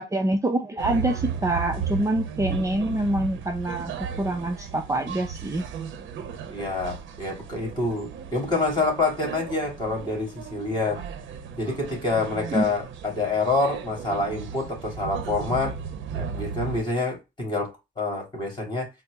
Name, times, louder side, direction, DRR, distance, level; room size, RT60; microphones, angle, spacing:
voice 1, 0.0-3.9 4.2-5.6 12.5-12.6, right 1 dB, 15° right, 0.5 m, -25 dB
sound 1, 0.8-16.8, right 6 dB, 75° right, 0.7 m, -35 dB
voice 2, 6.3-11.0 11.6-15.7 16.1-18.9, left 3 dB, 20° left, 2.2 m, -27 dB
4.2 x 2.0 x 3.4 m
cardioid pair, 90°, 20 cm